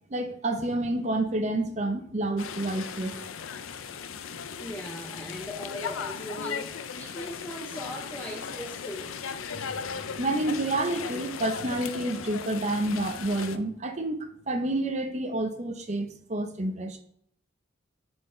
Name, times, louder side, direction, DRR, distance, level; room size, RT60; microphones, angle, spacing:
voice 1, 0.1-3.2 9.5-17.0, right 1 dB, 35° right, 0.7 m, -29 dB
sound 1, 2.4-13.6, left 6 dB, 85° left, 0.5 m, -37 dB
voice 2, 4.6-9.1, equal, 10° left, 0.6 m, -39 dB
9.7 x 4.5 x 3.2 m
head